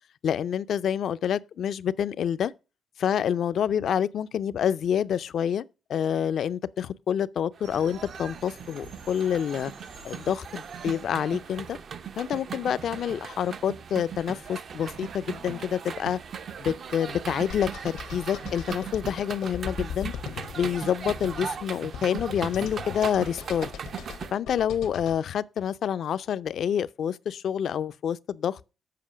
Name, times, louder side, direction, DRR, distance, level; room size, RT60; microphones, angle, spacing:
voice 1, 0.2-2.5 3.0-5.6 5.9-9.7 10.0-11.8 12.2-16.2 16.6-20.1 20.5-23.7 24.3-28.6, left 9 dB, 65° left, 0.4 m, -27 dB
sound 1, 7.6-24.3, right 7 dB, 55° right, 0.5 m, -39 dB
sound 2, 7.6-24.1, right 3 dB, 75° right, 2.6 m, -52 dB
sound 3, 17.5-25.2, left 8 dB, 85° left, 0.9 m, -40 dB
7.6 x 5.4 x 4.9 m
cardioid pair, 90°, 0 cm